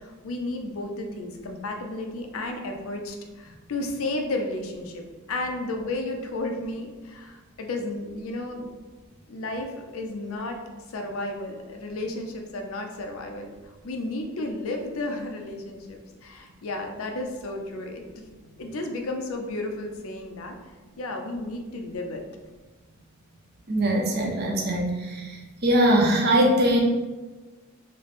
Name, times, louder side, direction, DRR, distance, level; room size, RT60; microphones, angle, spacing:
voice 1, 0.0-8.7 9.3-10.6 10.9-18.2 18.6-20.6 21.0-22.2, left 2 dB, 70° left, 3 dB, 0.5 m, -33 dB
voice 2, 23.7-25.4 25.6-26.8, right 1 dB, 50° right, 0 dB, 0.6 m, -21 dB
3.2 x 2.0 x 4.0 m, 1.2 s
head